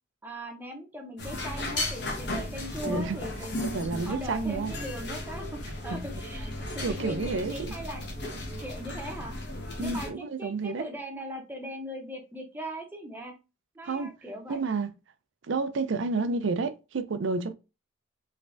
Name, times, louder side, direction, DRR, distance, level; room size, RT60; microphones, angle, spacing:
voice 1, 0.2-3.8 4.1-8.1 8.6-9.3 9.8-13.3 13.8-14.6, equal, 10° right, 0.7 m, -40 dB
sound 1, 1.2-10.1, left 1 dB, 55° left, 1.1 m, -35 dB
voice 2, 2.8-3.2 3.6-4.7 5.9-6.1 6.8-7.7 9.8-10.9 13.8-14.1 14.5-14.9 15.5-17.5, right 3 dB, 65° right, 0.4 m, -30 dB
3.3 x 3.2 x 2.5 m
head